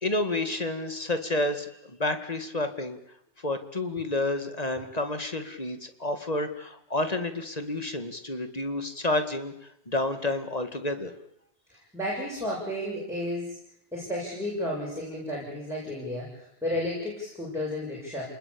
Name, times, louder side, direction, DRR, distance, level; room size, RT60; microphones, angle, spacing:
voice 1, 0.0-3.0 3.4-9.5 9.9-11.1, left 2 dB, 35° left, 8 dB, 2.2 m, -30 dB
voice 2, 11.9-13.6 13.9-18.2, left 1 dB, ahead, -5 dB, 7.8 m, -32 dB
29.5 x 20.0 x 8.6 m, 0.77 s
omnidirectional pair, 1.1 m